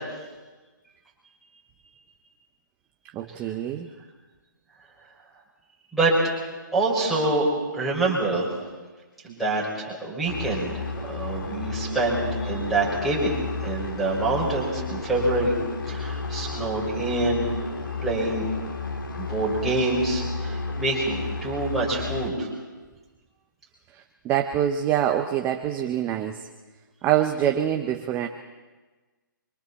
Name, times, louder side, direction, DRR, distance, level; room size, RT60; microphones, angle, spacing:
voice 1, 3.1-3.9 23.9-26.4 27.0-28.3, right 10 dB, 15° right, 6 dB, 0.7 m, -25 dB
voice 2, 6.7-7.5 7.7-8.5 9.2-15.6 15.9-17.5 18.0-18.5 19.2-22.5, right 2 dB, ahead, -8 dB, 5.8 m, -26 dB
sound 1, 10.2-22.3, left 3 dB, 80° left, 2.4 m, -32 dB
28.5 x 25.0 x 4.3 m, 1.3 s
hypercardioid pair, 155°, 11 cm